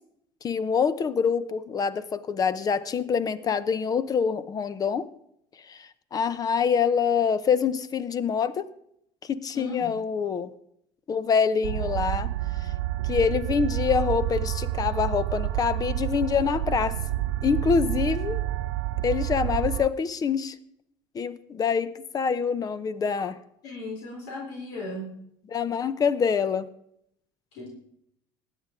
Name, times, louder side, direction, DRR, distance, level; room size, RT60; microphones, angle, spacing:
voice 1, 0.4-5.1 5.7-8.7 9.2-10.5 11.1-12.3 12.6-12.7 13.0-17.0 17.4-18.4 19.0-20.6 21.1-23.4 25.5-26.7, left 6 dB, 35° left, 15 dB, 0.8 m, -25 dB
voice 2, 9.5-9.9 23.6-25.1 27.5-27.7, left 1 dB, 75° left, -2 dB, 3.6 m, -36 dB
sound 1, 11.6-19.9, right 15 dB, 85° right, 0.4 m, -29 dB
16.5 x 9.9 x 3.7 m, 0.73 s
supercardioid pair, 105°, 11 cm